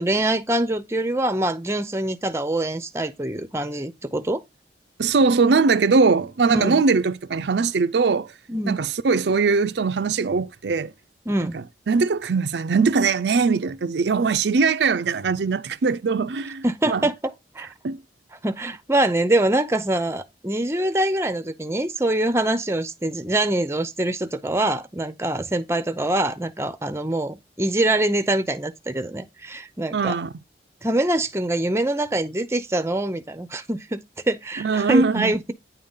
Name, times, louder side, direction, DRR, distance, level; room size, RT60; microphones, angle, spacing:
voice 1, 0.0-4.4 6.5-6.8 8.5-8.8 11.3-11.5 16.6-17.7 18.4-30.2 30.8-35.5, right 1 dB, 15° right, 0.7 m, -24 dB
voice 2, 5.0-8.3 8.7-10.9 11.4-17.0 17.8-18.0 29.9-30.3 34.6-35.3, right 4 dB, 80° right, 0.5 m, -21 dB
9.5 x 3.8 x 5.5 m
head